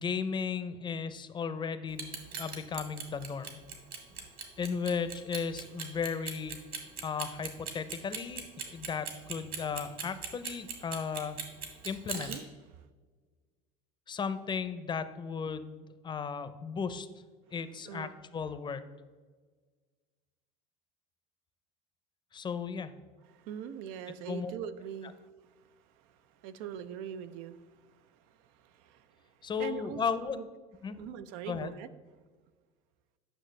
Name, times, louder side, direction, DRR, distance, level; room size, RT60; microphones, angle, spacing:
voice 1, 0.0-3.6 4.6-6.6 7.0-11.4 11.8-12.3 14.1-17.1 17.5-18.8 22.3-22.9 24.3-24.5 29.4-30.4 30.8-31.0 31.5-31.7, left 6 dB, 25° left, 12 dB, 0.6 m, -35 dB
Clock, 1.9-12.4, right 6 dB, 50° right, 1.8 m, -39 dB
voice 2, 23.3-25.1 26.4-27.6 28.6-29.1 29.6-30.5 31.0-31.9, right 8 dB, 75° right, 12 dB, 0.6 m, -42 dB
9.0 x 6.1 x 3.2 m, 1.4 s
supercardioid pair, 110°, 18 cm